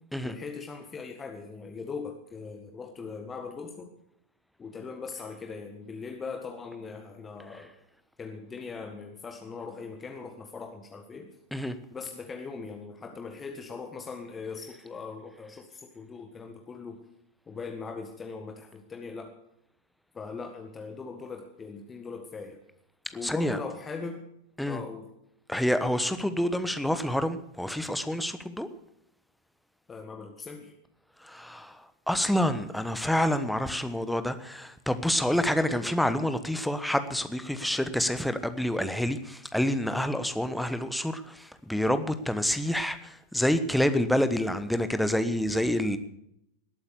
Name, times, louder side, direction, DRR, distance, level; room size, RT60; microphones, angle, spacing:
voice 1, 0.2-3.9 4.6-7.7 8.2-11.3 11.9-17.0 17.5-19.3 20.1-22.6 23.1-24.2 24.6-25.1 29.9-30.7, left 4 dB, 20° left, 4 dB, 1.6 m, -40 dB
voice 2, 23.2-23.6 24.6-24.8 25.5-28.7 31.2-46.0, equal, ahead, 10 dB, 1.1 m, -28 dB
19.5 x 8.7 x 6.8 m, 0.79 s
figure-of-eight pair, 90°, 0 cm